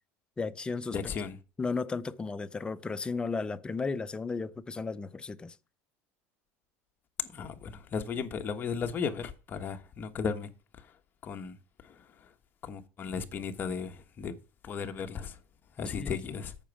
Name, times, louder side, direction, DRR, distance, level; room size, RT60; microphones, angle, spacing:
voice 1, 0.4-1.0 1.6-5.6 15.9-16.2, left 4 dB, 15° left, 0.5 m, -34 dB
voice 2, 0.9-1.4 7.2-10.5 11.2-11.6 11.8-12.0 12.6-14.4 14.6-15.4 15.8-16.5, left 6 dB, 30° left, 1.2 m, -35 dB
8.8 x 6.1 x 7.1 m
cardioid pair, 145°, 7 cm